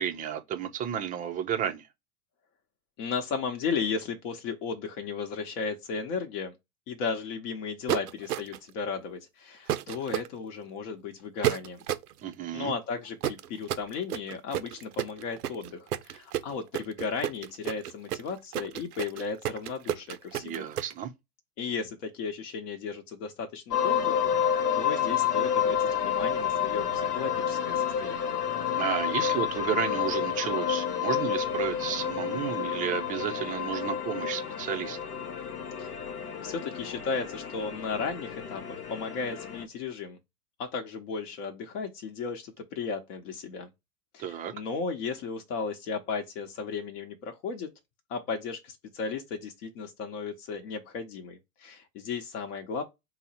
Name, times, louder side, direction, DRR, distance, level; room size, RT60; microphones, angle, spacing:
voice 1, 0.0-1.9 12.2-12.7 20.4-21.1 28.8-35.0 44.2-44.5, right 9 dB, 20° right, 0.4 m, -32 dB
voice 2, 3.0-6.5 6.9-11.8 12.5-20.7 21.6-28.3 35.8-35.9 36.4-40.2 40.6-43.7 44.1-47.7 48.1-52.8, left 5 dB, 55° left, 0.9 m, -35 dB
sound 1, 7.9-8.7 9.7-10.3 11.4-12.1 13.2-20.9, right 12 dB, 85° right, 0.5 m, -31 dB
sound 2, 23.7-39.6, left 8 dB, 90° left, 0.8 m, -30 dB
4.1 x 2.0 x 4.1 m
hypercardioid pair, 95°, 44 cm